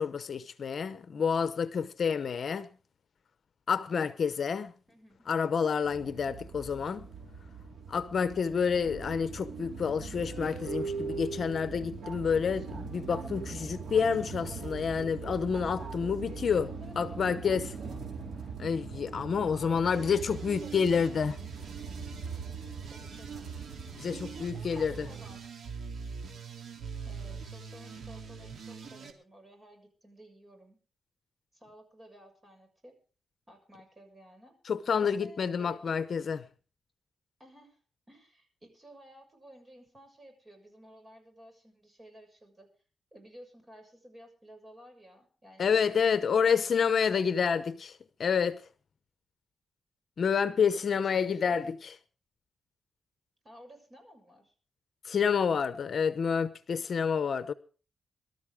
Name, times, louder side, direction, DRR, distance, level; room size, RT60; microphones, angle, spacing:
voice 1, 0.0-2.7 3.7-4.7 5.3-7.1 7.9-16.7 17.0-17.7 18.6-21.3 23.9-25.1 34.7-36.4 45.6-47.7 48.2-48.6 50.2-51.8 55.0-57.5, left 6 dB, 55° left, 0.8 m, -28 dB
voice 2, 4.9-5.2 16.5-17.2 17.4-18.0 19.5-21.3 22.9-23.5 24.3-25.6 27.0-30.8 31.5-32.9 33.5-34.5 35.0-35.9 37.4-37.8 38.1-42.7 43.1-46.6 47.2-47.9 50.7-51.6 53.4-54.5, equal, 25° right, 6.8 m, -54 dB
sound 1, 5.8-25.4, right 5 dB, 85° right, 4.3 m, -41 dB
sound 2, 19.9-29.1, right 6 dB, 70° right, 3.1 m, -43 dB
23.5 x 13.0 x 3.6 m
cardioid pair, 110°, 0 cm